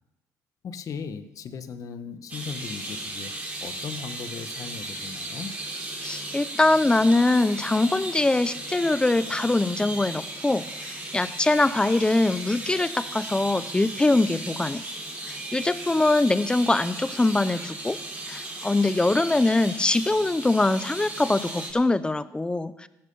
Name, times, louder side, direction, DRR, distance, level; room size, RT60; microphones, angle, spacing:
voice 1, 0.6-3.3 3.6-5.5, left 6 dB, 55° left, 10 dB, 1.4 m, -37 dB
sound 1, 2.3-21.7, right 2 dB, 25° right, 5.7 m, -36 dB
voice 2, 6.0-14.8 15.3-18.0 18.3-22.9, left 2 dB, 15° left, 15 dB, 0.8 m, -23 dB
14.5 x 13.5 x 5.6 m, 0.93 s
cardioid pair, 90°, 7 cm